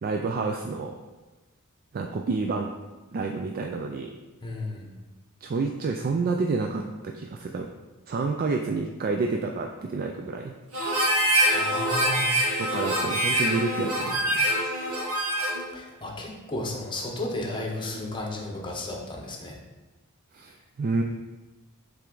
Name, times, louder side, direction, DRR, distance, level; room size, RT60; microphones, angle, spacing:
voice 1, 0.0-1.0 1.9-2.7 3.1-4.1 5.4-7.7 8.1-10.5 12.6-14.3 20.3-21.0, right 3 dB, 40° right, 3 dB, 0.3 m, -29 dB
voice 2, 4.4-4.9 11.2-12.6 15.7-19.6, left 2 dB, 20° left, 0 dB, 1.0 m, -34 dB
Harmonica, 10.7-15.6, right 1 dB, 85° right, 1.8 m, -25 dB
7.5 x 3.4 x 3.9 m, 1.2 s
head